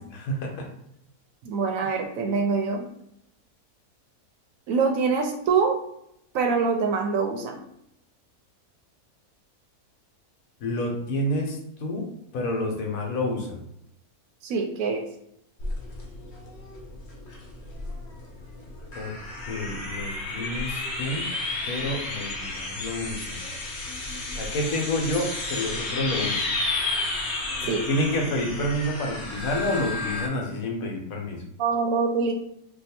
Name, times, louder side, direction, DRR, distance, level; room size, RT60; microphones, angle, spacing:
voice 1, 0.1-0.7 10.6-13.6 18.9-19.1 19.5-21.3 21.7-23.4 24.3-26.6 27.6-31.4, left 1 dB, 70° left, 1 dB, 1.1 m, -29 dB
voice 2, 1.4-2.9 4.7-5.8 6.3-7.6 14.4-15.0 27.6-27.8 31.6-32.3, right 5 dB, 70° right, 3 dB, 0.9 m, -24 dB
sound 1, 15.6-30.3, left 2 dB, 55° left, 0.9 m, -32 dB
2.7 x 2.3 x 4.2 m, 0.76 s
omnidirectional pair, 1.6 m